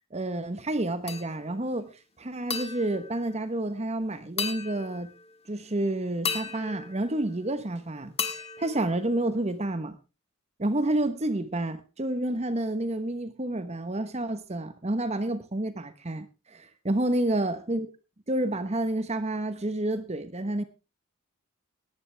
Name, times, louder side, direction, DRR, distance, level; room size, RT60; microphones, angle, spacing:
voice 1, 0.1-1.9 2.2-5.1 5.5-10.0 10.6-17.9 18.3-20.6, right 1 dB, 30° right, 1.0 m, -29 dB
sound 1, 1.1-1.7 2.5-3.9 4.4-5.4 6.2-7.7 8.2-9.6, left 5 dB, 30° left, 1.7 m, -36 dB
17.5 x 12.0 x 3.4 m
head